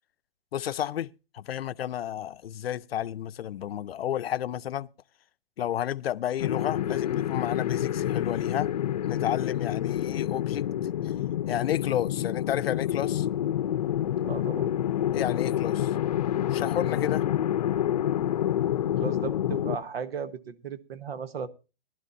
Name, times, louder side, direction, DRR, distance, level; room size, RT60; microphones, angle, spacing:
voice 1, 0.5-4.9 5.6-8.7 9.1-10.7 11.5-13.3 15.1-15.9 16.5-17.2, left 11 dB, 85° left, 0.6 m, -31 dB
sound 1, 6.4-19.8, left 11 dB, 40° left, 0.6 m, -28 dB
voice 2, 14.2-14.7 18.8-21.5, right 6 dB, 85° right, 1.4 m, -36 dB
19.5 x 12.0 x 2.7 m
hypercardioid pair, 170°, 29 cm